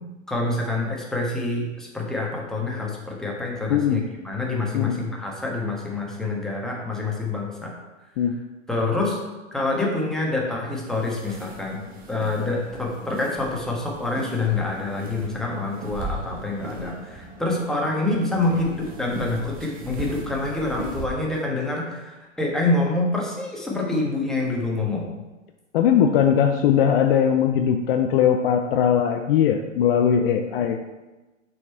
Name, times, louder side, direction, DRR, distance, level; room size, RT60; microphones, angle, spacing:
voice 1, 0.3-7.7 8.7-9.2 9.5-11.8 12.1-25.1, left 2 dB, ahead, -2 dB, 1.3 m, -26 dB
sound 1, 10.8-21.1, right 2 dB, 20° right, 1.1 m, -38 dB
voice 2, 25.7-30.8, left 8 dB, 50° left, 5 dB, 0.6 m, -20 dB
6.2 x 4.6 x 4.4 m, 1.1 s
hypercardioid pair, 105°, 38 cm